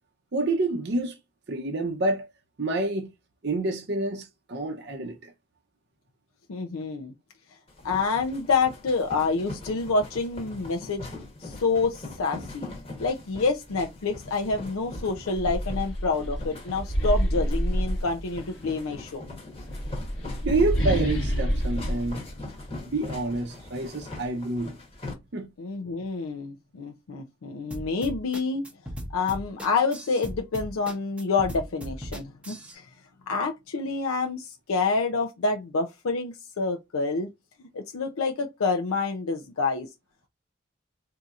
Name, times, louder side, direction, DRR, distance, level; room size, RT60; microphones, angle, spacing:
voice 1, 0.3-1.2 1.5-2.3 2.6-3.1 3.4-5.3 20.4-22.2 22.9-24.7 25.3-25.5, right 2 dB, 50° right, 0.6 m, -28 dB
voice 2, 6.5-7.1 7.8-11.1 11.4-12.7 13.0-19.2 25.6-28.7 29.1-32.9 33.3-37.3 37.7-39.9, left 4 dB, 90° left, 0.5 m, -28 dB
sound 1, 7.7-25.1, left 2 dB, 30° left, 1.0 m, -41 dB
sound 2, 14.4-14.5 14.9-18.6 19.5-23.1, equal, 60° left, 1.2 m, -28 dB
sound 3, 27.7-32.8, equal, 5° right, 0.7 m, -37 dB
4.0 x 2.7 x 2.4 m
head